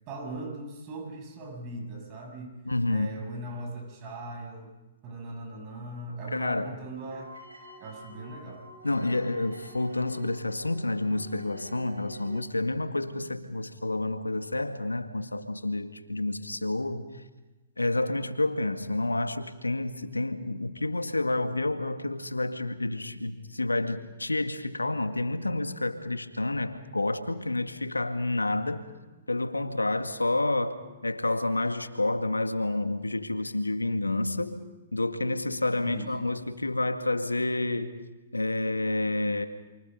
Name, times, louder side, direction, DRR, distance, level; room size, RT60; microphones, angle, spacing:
voice 1, 0.1-2.6 2.9-4.7 5.0-7.3 7.8-9.2 35.8-36.3, right 2 dB, 30° right, 2 dB, 7.7 m, -40 dB
voice 2, 2.7-3.1 6.3-6.7 8.8-17.1 17.8-28.9 29.3-30.8 31.0-34.6 34.9-37.9 38.3-39.5, left 2 dB, 80° left, 8 dB, 2.0 m, -29 dB
sound 1, 6.9-12.4, equal, 70° right, 7.5 m, -49 dB
28.5 x 24.5 x 5.4 m, 1.1 s
figure-of-eight pair, 115°, 0 cm